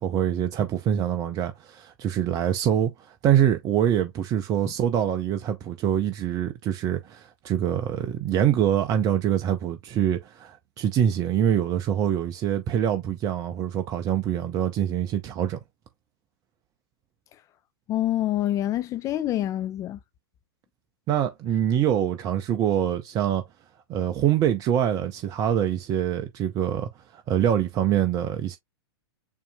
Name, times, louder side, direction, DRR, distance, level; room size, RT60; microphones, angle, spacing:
voice 1, 0.0-15.6 21.1-23.4 23.9-28.6, right 10 dB, 25° right, 0.6 m, -25 dB
voice 2, 17.9-20.0, left 13 dB, 25° left, 0.4 m, -26 dB
6.9 x 2.8 x 2.2 m
figure-of-eight pair, 105°, 13 cm